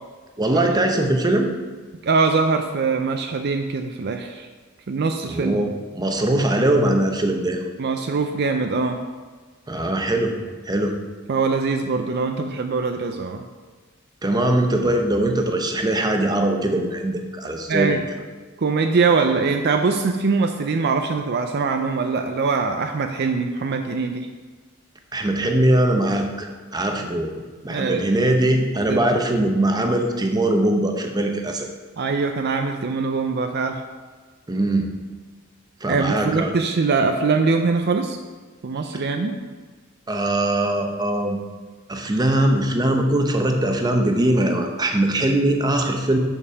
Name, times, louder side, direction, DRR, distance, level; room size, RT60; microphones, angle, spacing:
voice 1, 0.4-1.5 5.3-7.6 9.7-10.3 10.7-11.0 14.2-18.0 25.1-27.3 27.6-31.7 34.5-34.9 35.8-36.5 40.1-41.4 41.9-46.2, right 1 dB, 20° right, 3 dB, 0.8 m, -21 dB
voice 2, 2.0-4.5 4.9-5.6 7.8-9.0 11.3-13.4 17.7-18.0 18.6-24.3 27.7-28.0 28.9-29.0 32.0-33.8 35.9-38.2 38.6-39.4, right 4 dB, 50° right, 5 dB, 0.5 m, -22 dB
7.0 x 5.3 x 6.1 m, 1.4 s
head